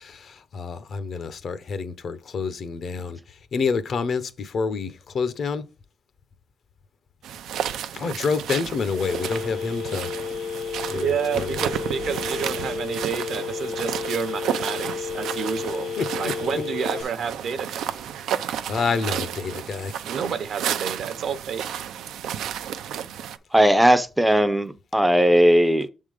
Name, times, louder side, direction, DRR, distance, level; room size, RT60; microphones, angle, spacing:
voice 1, 0.0-5.6 7.9-10.1 10.8-11.7 16.0-16.6 17.0-17.1 17.8-18.1 18.7-20.0, left 5 dB, 45° left, 0.7 m, -28 dB
sound 1, 7.2-23.4, right 9 dB, 85° right, 0.5 m, -32 dB
Telephone, 9.0-17.0, left 7 dB, 90° left, 0.6 m, -32 dB
voice 2, 10.9-17.9 20.0-21.6, right 7 dB, 60° right, 0.9 m, -30 dB
voice 3, 23.5-25.9, equal, 5° right, 0.5 m, -18 dB
7.2 x 3.7 x 4.9 m
cardioid pair, 145°, 0 cm